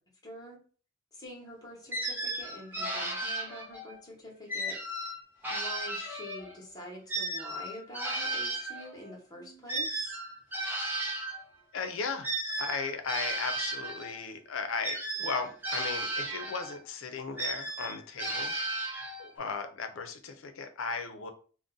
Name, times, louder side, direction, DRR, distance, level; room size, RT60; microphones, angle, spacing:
voice 1, 0.2-0.6 1.1-4.8 5.5-10.1, equal, 20° left, -1 dB, 1.0 m, -46 dB
sound 1, 1.9-3.9 4.5-6.6 7.1-11.4 12.2-14.2 14.8-16.8 17.4-19.4, right 2 dB, 10° right, 0.6 m, -35 dB
voice 2, 11.7-18.5 19.2-21.3, left 4 dB, 75° left, 8 dB, 0.5 m, -36 dB
2.5 x 2.0 x 3.7 m, 0.42 s
head